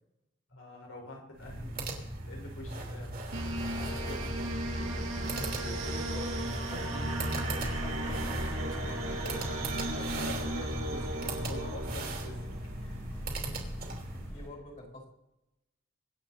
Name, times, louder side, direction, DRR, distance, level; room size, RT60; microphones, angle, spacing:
voice 1, 0.5-1.7 2.2-3.2 3.8-4.3 9.7-12.5 12.8-13.4, left 1 dB, 85° left, 0 dB, 4.6 m, -46 dB
sound 1, 1.3-14.3, right 2 dB, 45° right, 3.0 m, -39 dB
sound 2, 3.3-12.7, right 1 dB, 85° right, 2.8 m, -35 dB
voice 2, 5.7-9.4 14.3-15.1, left 1 dB, 40° left, -1 dB, 3.8 m, -45 dB
sound 3, 7.5-14.5, equal, 10° left, 1.9 m, -42 dB
24.5 x 8.6 x 4.1 m, 0.89 s
head